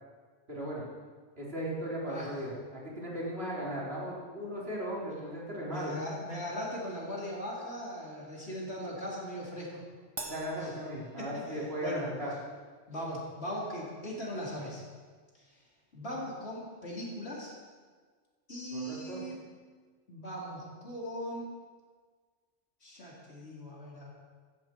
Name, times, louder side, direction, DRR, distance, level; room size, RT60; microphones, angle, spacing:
voice 1, 0.5-0.8 1.4-5.9 10.2-12.3 18.7-19.2, right 1 dB, 55° right, -6 dB, 4.1 m, -37 dB
voice 2, 5.6-9.8 10.6-10.7 11.2-12.1 12.9-14.8 15.3-15.6 15.9-17.5 18.5-19.4 20.1-21.5 22.8-24.1, equal, 60° left, -5 dB, 4.1 m, -39 dB
Crash cymbal, 10.2-11.8, right 2 dB, 25° right, 0.9 m, -45 dB
16.0 x 14.0 x 4.6 m, 1.5 s
omnidirectional pair, 1.2 m